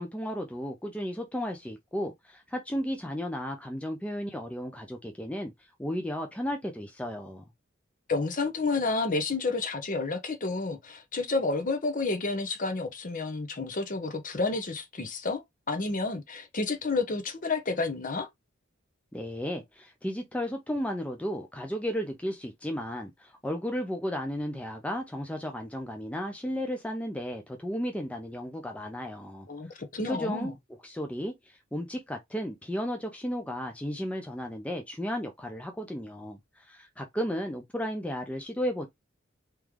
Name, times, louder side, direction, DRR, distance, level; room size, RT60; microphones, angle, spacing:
voice 1, 0.0-5.5 5.8-7.4 19.1-29.5 30.0-30.5 30.8-38.9, equal, 5° left, 0.5 m, -34 dB
voice 2, 8.1-18.3 29.5-30.5, left 3 dB, 40° left, 0.9 m, -30 dB
3.3 x 3.0 x 3.5 m
head